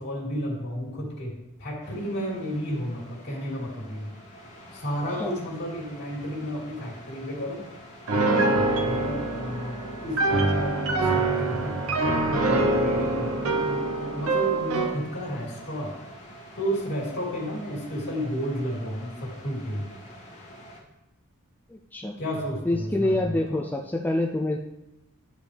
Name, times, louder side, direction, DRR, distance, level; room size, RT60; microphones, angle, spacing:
voice 1, 0.0-4.1 4.7-7.7 8.2-11.7 12.3-16.0 16.5-20.0 22.2-23.6, equal, 50° left, -3 dB, 2.8 m, -32 dB
sound 1, 1.8-20.8, equal, 35° left, 2.1 m, -47 dB
Piano, 8.1-15.0, right 2 dB, 75° right, 0.8 m, -25 dB
voice 2, 21.7-22.1 22.7-24.6, left 1 dB, 10° left, 1 dB, 0.4 m, -26 dB
12.0 x 5.2 x 3.3 m, 0.95 s
head